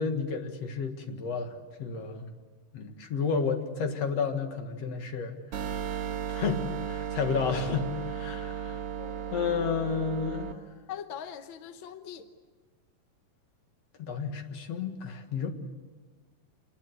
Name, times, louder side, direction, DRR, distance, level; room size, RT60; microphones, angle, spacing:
voice 1, 0.0-1.5 1.8-2.3 2.7-5.3 6.3-8.8 9.3-10.5 14.0-15.5, left 5 dB, 55° left, 6 dB, 2.6 m, -31 dB
sound 1, 5.5-10.5, right 9 dB, 55° right, 2.3 m, -35 dB
voice 2, 9.0-9.8 10.9-12.3, left 8 dB, 75° left, 9 dB, 1.1 m, -42 dB
28.0 x 20.5 x 8.2 m, 1.4 s
omnidirectional pair, 3.8 m